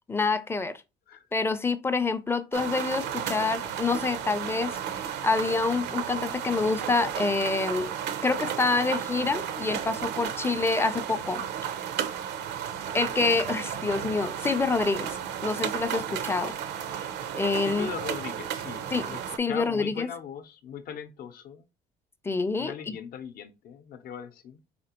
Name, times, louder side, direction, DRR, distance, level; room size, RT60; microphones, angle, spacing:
voice 1, 0.1-0.8 1.3-7.9 8.2-11.8 12.9-16.6 16.9-17.1 17.3-17.9 18.9-19.1 19.4-20.1 22.2-23.0, left 3 dB, 15° left, 0.4 m, -27 dB
sound 1, 2.5-19.4, right 9 dB, 80° right, 0.6 m, -33 dB
voice 2, 17.6-21.6 22.6-24.6, left 8 dB, 60° left, 0.7 m, -39 dB
4.2 x 3.3 x 2.9 m
cardioid pair, 110°, 17 cm